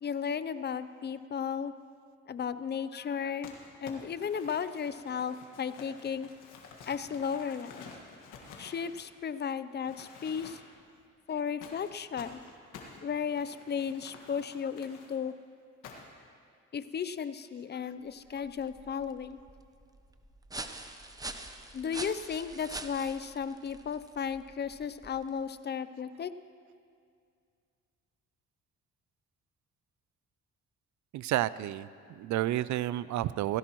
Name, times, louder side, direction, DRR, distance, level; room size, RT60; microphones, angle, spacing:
voice 1, 0.0-1.7 2.3-3.5 3.8-6.3 6.9-7.8 8.6-10.6 11.3-12.4 13.0-15.3 16.7-19.4 21.7-26.3, left 7 dB, 35° left, 13 dB, 0.6 m, -35 dB
Crumpling crinkling, 3.4-9.5 9.8-10.8 11.6-15.1 15.8-16.3, left 4 dB, 85° left, 1.7 m, -50 dB
sound 1, 18.1-25.5, right 2 dB, 10° right, 0.8 m, -45 dB
voice 2, 31.1-33.6, right 14 dB, 70° right, 17 dB, 0.4 m, -31 dB
17.5 x 16.0 x 3.0 m, 2.3 s
cardioid pair, 90°, 30 cm